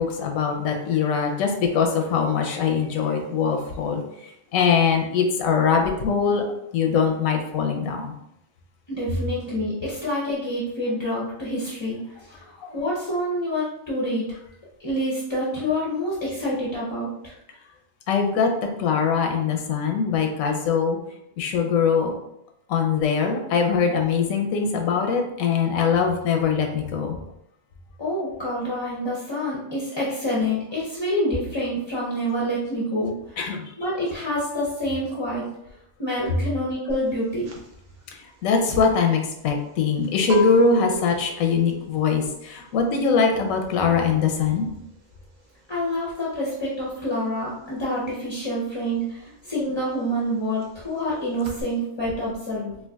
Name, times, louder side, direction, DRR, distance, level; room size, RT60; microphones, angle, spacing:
voice 1, 0.0-4.0 4.5-6.4 6.7-8.1 12.6-12.7 18.1-18.5 18.8-21.0 21.4-22.1 22.7-27.2 33.4-33.6 38.4-44.7, left 5 dB, 85° left, 3 dB, 1.0 m, -22 dB
voice 2, 8.9-14.3 14.8-17.4 28.0-33.4 33.8-35.5 36.0-37.5 45.7-52.8, equal, 30° left, -6 dB, 0.5 m, -27 dB
sound 1, 36.9-47.1 47.4-51.6, right 2 dB, 50° right, 0.5 m, -34 dB
4.5 x 2.4 x 2.3 m, 0.78 s
omnidirectional pair, 1.4 m